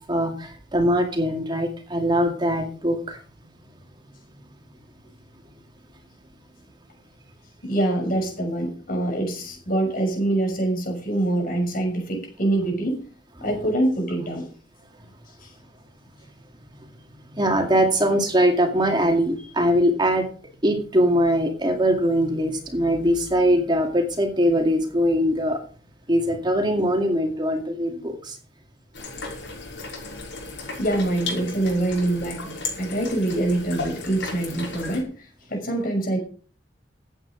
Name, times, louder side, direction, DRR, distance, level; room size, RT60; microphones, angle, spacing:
voice 1, 0.1-3.2 17.3-20.3 20.6-25.6 26.1-28.4, equal, 25° right, 4 dB, 2.2 m, -22 dB
voice 2, 7.6-13.0 13.4-14.4 15.4-15.5 30.8-35.1 35.5-36.2, right 1 dB, 50° left, 2 dB, 6.3 m, -25 dB
sound 1, 28.9-35.0, left 3 dB, 85° left, 5.9 m, -35 dB
15.0 x 9.1 x 5.2 m, 0.41 s
head